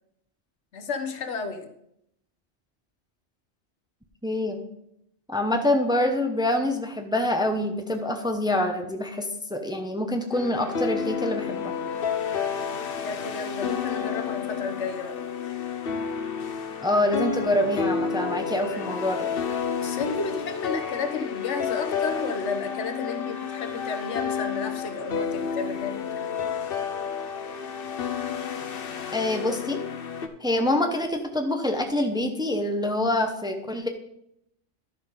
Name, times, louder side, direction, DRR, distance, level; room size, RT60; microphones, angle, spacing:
voice 1, 0.7-1.7 13.0-15.2 19.8-26.0, left 4 dB, 85° left, 7 dB, 1.3 m, -32 dB
voice 2, 4.2-4.6 5.3-11.7 16.8-19.3 29.1-29.8 30.4-33.9, left 1 dB, 5° right, 4 dB, 0.8 m, -26 dB
sound 1, 10.3-30.3, left 6 dB, 55° left, 1.0 m, -30 dB
12.0 x 5.3 x 5.3 m, 0.76 s
omnidirectional pair, 1.2 m